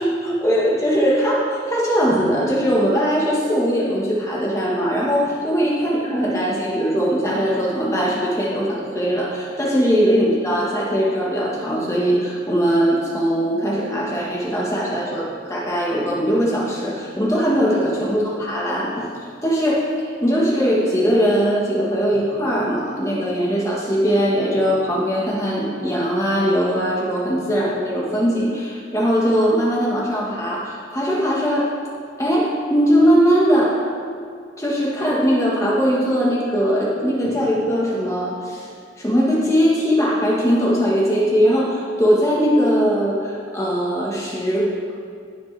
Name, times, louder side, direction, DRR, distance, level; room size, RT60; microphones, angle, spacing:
voice 1, 0.0-19.1 19.4-31.7 32.2-33.8 34.6-38.7 39.0-44.7, equal, 15° left, -5 dB, 1.3 m, -20 dB
16.5 x 6.2 x 3.3 m, 2.2 s
head